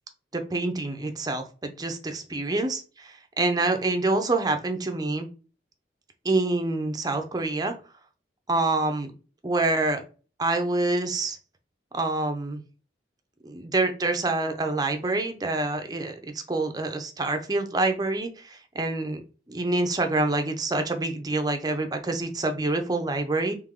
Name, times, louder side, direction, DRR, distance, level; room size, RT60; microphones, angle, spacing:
voice 1, 0.3-5.3 6.2-7.7 8.5-9.1 9.4-10.0 10.4-11.4 11.9-12.6 13.4-19.2 19.5-23.5, right 2 dB, 20° right, 5 dB, 0.6 m, -26 dB
3.5 x 3.2 x 3.7 m, 0.36 s
head